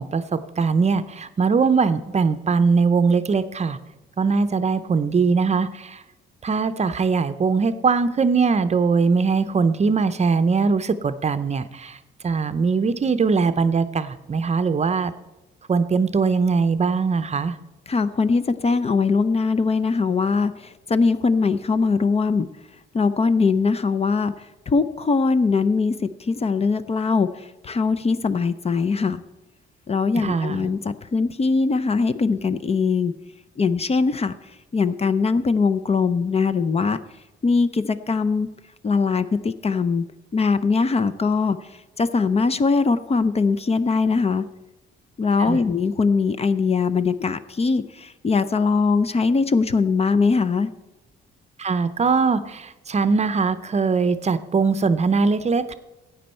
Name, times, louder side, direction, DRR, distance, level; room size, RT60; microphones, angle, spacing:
voice 1, 0.0-3.8 4.2-6.0 6.4-12.0 12.2-15.1 15.7-17.6 30.2-30.7 45.4-45.6 51.6-55.7, right 5 dB, 35° right, 12 dB, 0.6 m, -21 dB
voice 2, 17.9-22.5 22.9-29.2 29.9-33.1 33.6-34.3 34.7-37.0 37.4-38.5 38.8-40.0 40.3-41.6 42.0-44.4 45.2-50.7, left 4 dB, 30° left, 13 dB, 0.6 m, -21 dB
13.5 x 8.8 x 4.4 m, 1.0 s
cardioid pair, 90°, 20 cm